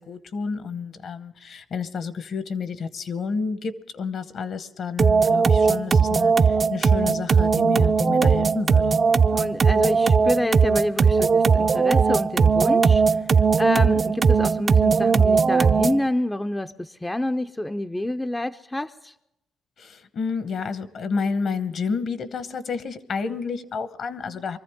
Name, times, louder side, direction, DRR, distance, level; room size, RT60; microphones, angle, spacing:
voice 1, 0.0-9.0 19.8-24.6, left 5 dB, 60° left, 12 dB, 1.1 m, -30 dB
sound 1, 5.0-16.1, right 5 dB, 40° right, 0.5 m, -19 dB
voice 2, 9.3-13.2 13.6-19.1, left 1 dB, 10° left, 8 dB, 0.5 m, -27 dB
23.5 x 14.5 x 3.6 m, 0.85 s
cardioid pair, 90°, 0 cm